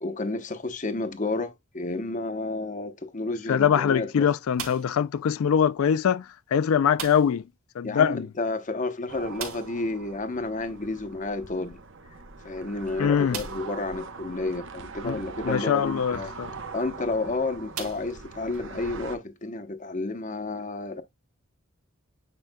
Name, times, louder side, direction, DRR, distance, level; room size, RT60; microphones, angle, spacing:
voice 1, 0.0-4.3 7.8-11.8 12.4-16.3 16.7-21.0, left 2 dB, 35° left, 0.8 m, -31 dB
voice 2, 3.5-7.4 7.8-8.3 13.0-13.4 15.0-15.2 15.4-16.5, left 8 dB, 80° left, 0.4 m, -23 dB
sound 1, 4.5-5.1 6.9-7.5 7.8-7.9 8.2-8.3 9.3-9.9 11.7-11.8 12.4-12.5 13.3-13.8 14.5-14.6 16.6-16.8 17.7-18.6, right 6 dB, 85° right, 2.5 m, -38 dB
sound 2, 9.1-19.2, right 4 dB, 60° right, 0.9 m, -42 dB
9.0 x 4.9 x 2.2 m
head